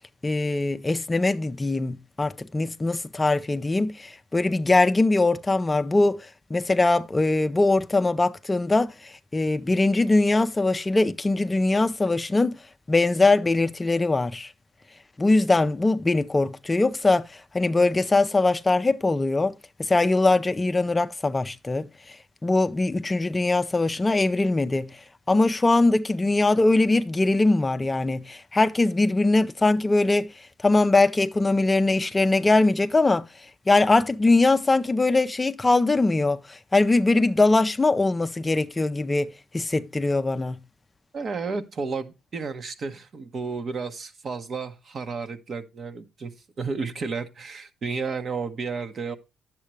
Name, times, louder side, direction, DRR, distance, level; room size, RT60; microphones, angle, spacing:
voice 1, 0.2-12.6 12.9-14.5 15.2-19.5 19.8-40.6, left 2 dB, 20° left, 0.5 m, -22 dB
voice 2, 41.1-46.3 46.6-49.2, right 4 dB, 50° right, 1.1 m, -32 dB
10.0 x 7.4 x 3.2 m
cardioid pair, 75°, 0 cm